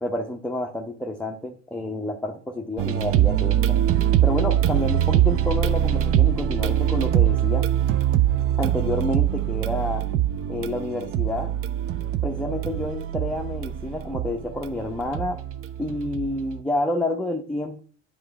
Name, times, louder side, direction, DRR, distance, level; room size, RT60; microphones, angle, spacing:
voice 1, 0.0-3.8 4.2-7.7 8.6-10.1 10.5-11.5 12.2-15.4 15.8-17.8, left 1 dB, 5° left, 1 dB, 0.7 m, -29 dB
sound 1, 2.8-16.6, right 11 dB, 40° right, 0.6 m, -23 dB
9.7 x 4.5 x 3.3 m, 0.43 s
hypercardioid pair, 70°, 36 cm